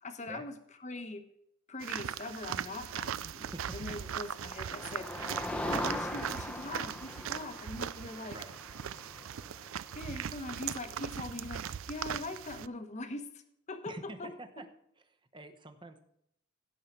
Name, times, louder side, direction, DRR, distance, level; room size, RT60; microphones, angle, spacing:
voice 1, 0.0-0.5 0.8-1.3 1.7-8.4 9.9-13.4 13.7-14.3, left 2 dB, 35° left, 8 dB, 1.0 m, -42 dB
sound 1, 1.8-12.7, right 9 dB, 85° right, 0.4 m, -39 dB
voice 2, 3.4-4.0 8.2-8.5 13.8-14.6 15.3-16.0, right 2 dB, 25° right, 7 dB, 1.0 m, -47 dB
Motor vehicle (road), 3.6-11.4, left 1 dB, 5° left, 0.8 m, -41 dB
16.5 x 5.5 x 4.5 m, 0.75 s
head